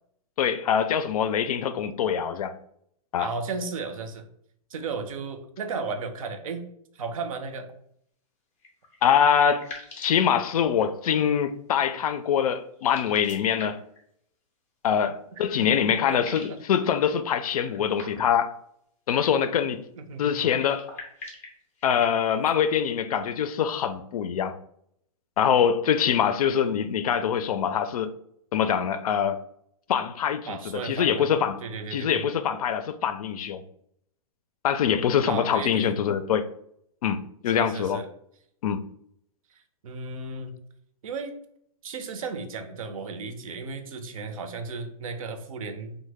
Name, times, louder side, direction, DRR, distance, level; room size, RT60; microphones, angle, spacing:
voice 1, 0.4-2.5 3.1-3.3 9.0-9.7 10.0-13.8 14.8-18.5 19.1-19.8 20.2-20.9 21.8-24.5 25.4-28.1 28.5-29.4 29.9-31.6 31.9-33.6 34.6-36.5 37.0-38.0 38.6-38.8, left 8 dB, 75° left, 0.4 m, -24 dB
voice 2, 3.2-4.3 4.7-6.6 6.9-7.7 15.3-16.6 20.0-20.5 30.5-31.3 31.6-32.2 35.3-36.0 37.5-38.1 39.5-40.6 41.0-41.3 41.8-46.0, right 4 dB, 65° right, 0.6 m, -35 dB
sound 1, 8.6-11.1 12.7-14.0 15.4-15.5 15.7-16.7 17.5-18.5 20.4-22.5, left 3 dB, 10° left, 0.4 m, -45 dB
3.0 x 2.1 x 3.3 m
hypercardioid pair, 165°, 19 cm